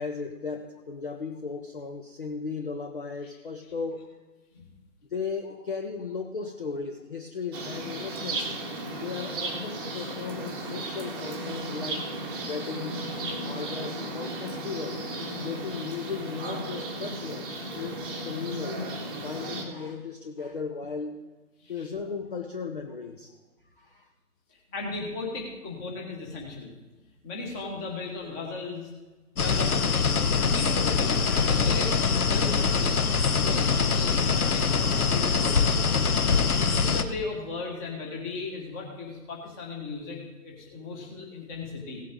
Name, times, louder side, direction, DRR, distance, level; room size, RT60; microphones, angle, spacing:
voice 1, 0.0-4.1 5.1-8.5 9.0-12.1 12.5-13.0 13.4-15.1 15.4-18.9 19.2-21.2 21.7-23.3 23.8-24.1, left 5 dB, 35° left, 4 dB, 0.7 m, -36 dB
sound 1, 7.5-19.6, right 1 dB, 15° right, 1.1 m, -35 dB
voice 2, 24.5-26.7 27.2-28.9 29.3-33.0 33.4-35.9 36.2-42.0, left 3 dB, 10° left, 0 dB, 1.3 m, -37 dB
sound 2, 29.4-37.0, left 5 dB, 65° left, 0.9 m, -24 dB
16.5 x 7.5 x 3.7 m, 1.2 s
figure-of-eight pair, 140°, 47 cm